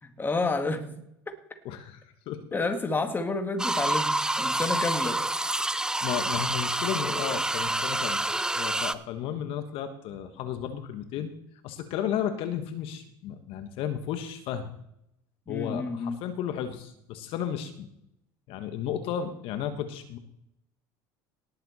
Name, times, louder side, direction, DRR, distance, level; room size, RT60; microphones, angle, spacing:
voice 1, 0.0-1.0 2.5-5.2 15.5-16.2, left 3 dB, 20° left, 2.1 m, -30 dB
voice 2, 1.6-2.0 2.3-2.4 4.7-4.8 6.0-8.2 8.5-11.3 11.6-14.7 15.5-17.9 18.5-20.2, left 9 dB, 60° left, 1.4 m, -33 dB
sound 1, 3.6-9.0, right 1 dB, 5° right, 0.6 m, -28 dB
18.5 x 7.6 x 4.2 m
hypercardioid pair, 85°, 11 cm